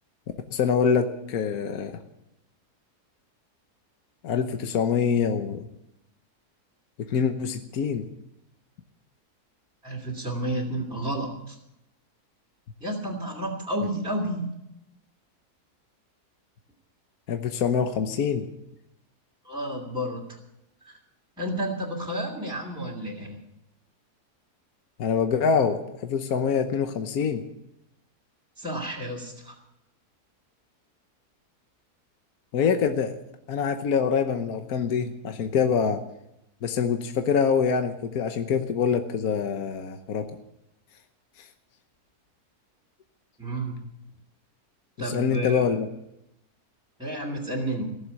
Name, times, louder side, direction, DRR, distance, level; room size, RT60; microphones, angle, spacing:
voice 1, 0.5-2.0 4.2-5.7 7.1-8.1 17.3-18.5 25.0-27.4 32.5-33.2 33.5-36.0 36.6-40.3 45.0-45.9, left 6 dB, 70° left, 7 dB, 1.5 m, -25 dB
voice 2, 9.8-11.6 12.8-14.4 19.4-20.2 20.8-21.0 21.4-23.4 28.6-29.6 43.4-43.8 45.0-45.6 47.0-47.9, right 1 dB, 5° right, -4 dB, 2.5 m, -31 dB
18.0 x 7.4 x 9.8 m, 0.86 s
omnidirectional pair, 1.7 m